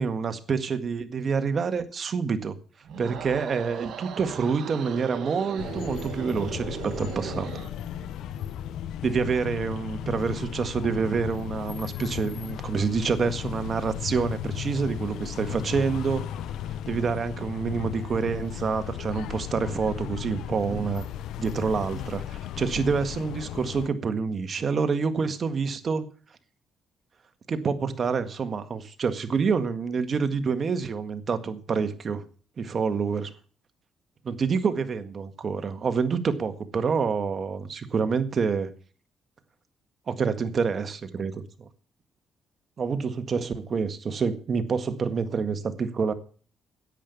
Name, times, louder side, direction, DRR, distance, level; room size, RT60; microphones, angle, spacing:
voice 1, 0.0-2.5 3.0-7.5 9.0-16.2 16.8-21.1 21.4-26.0 27.5-32.2 32.6-33.3 34.2-38.7 40.1-41.7 42.8-46.1, right 5 dB, 45° right, 9 dB, 1.7 m, -27 dB
sound 1, 2.8-7.8, right 8 dB, 75° right, 1.6 m, -38 dB
sound 2, 5.6-23.9, left 10 dB, 80° left, 0.5 m, -35 dB
10.5 x 8.6 x 8.4 m, 0.41 s
cardioid pair, 90°, 0 cm